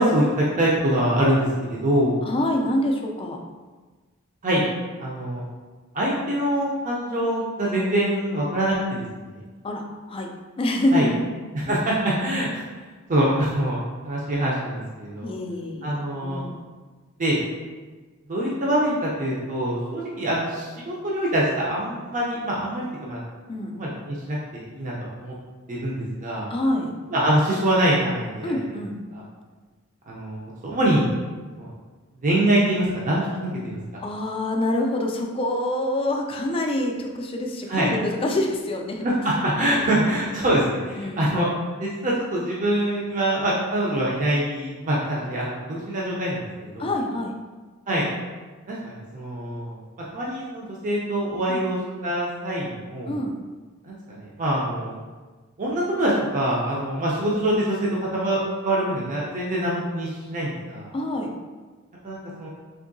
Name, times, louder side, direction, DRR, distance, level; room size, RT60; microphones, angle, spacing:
voice 1, 0.0-2.2 4.4-4.7 5.0-5.4 5.9-9.4 10.9-11.1 11.5-12.6 13.1-15.3 15.8-16.4 17.2-17.4 18.3-23.2 23.7-24.9 25.2-25.3 25.7-26.5 27.1-28.8 29.1-29.2 30.1-31.1 31.6-31.7 32.2-33.3 33.6-34.0 37.7-37.9 39.0-41.5 41.8-46.9 47.9-48.1 48.7-49.8 50.1-53.2 53.9-55.0 55.6-60.9 62.0-62.5, right 1 dB, 35° right, -5 dB, 0.5 m, -24 dB
voice 2, 2.2-3.4 9.6-10.3 10.6-11.3 15.2-16.5 23.5-23.8 26.5-26.9 28.4-29.0 34.0-39.1 39.5-40.5 40.9-41.3 46.8-47.4 51.5-51.6 53.1-53.4 60.9-61.3, left 1 dB, 25° left, 2 dB, 0.3 m, -26 dB
3.6 x 2.6 x 2.6 m, 1.3 s
head